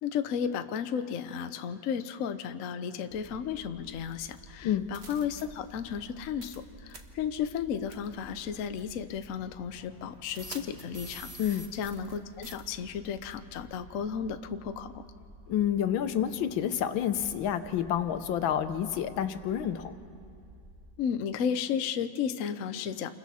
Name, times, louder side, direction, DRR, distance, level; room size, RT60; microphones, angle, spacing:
voice 1, 0.0-14.9 21.0-23.1, left 7 dB, 60° left, 9 dB, 0.9 m, -34 dB
sound 1, 3.1-20.9, right 1 dB, 20° right, 3.7 m, -53 dB
sound 2, 4.3-4.4 4.9-5.4 6.4-6.6 6.9-7.0 7.9-8.1 8.8-8.9 10.3-12.2 12.4-12.6, right 2 dB, 40° right, 1.3 m, -45 dB
voice 2, 11.4-11.7 15.5-19.9, left 10 dB, 85° left, 10 dB, 1.6 m, -29 dB
29.0 x 21.5 x 4.2 m, 2.4 s
omnidirectional pair, 2.1 m